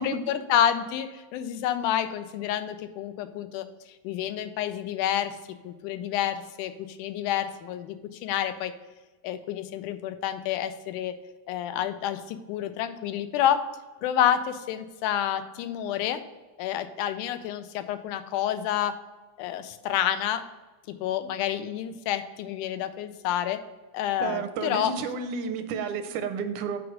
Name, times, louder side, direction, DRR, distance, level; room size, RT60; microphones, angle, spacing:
voice 1, 0.0-5.4 5.6-8.7 9.2-11.1 11.5-13.7 14.0-16.2 16.6-19.0 19.4-20.5 20.9-23.6 23.9-24.9, left 10 dB, 85° left, 10 dB, 2.1 m, -29 dB
voice 2, 24.2-26.8, right 6 dB, 80° right, 8 dB, 2.0 m, -31 dB
6.0 x 4.7 x 6.2 m, 1.2 s
omnidirectional pair, 3.6 m